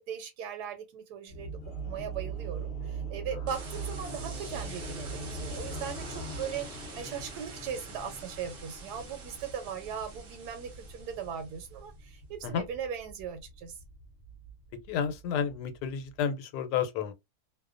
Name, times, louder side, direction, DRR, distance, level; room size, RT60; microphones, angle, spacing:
voice 1, 0.1-1.6 1.9-13.7, right 8 dB, 85° right, 1.2 m, -39 dB
sound 1, 1.3-16.2, right 3 dB, 50° left, 0.8 m, -42 dB
sound 2, 3.5-11.7, right 4 dB, 60° right, 0.6 m, -47 dB
voice 2, 14.9-17.1, left 7 dB, 85° left, 1.2 m, -31 dB
2.7 x 2.1 x 2.4 m
omnidirectional pair, 1.7 m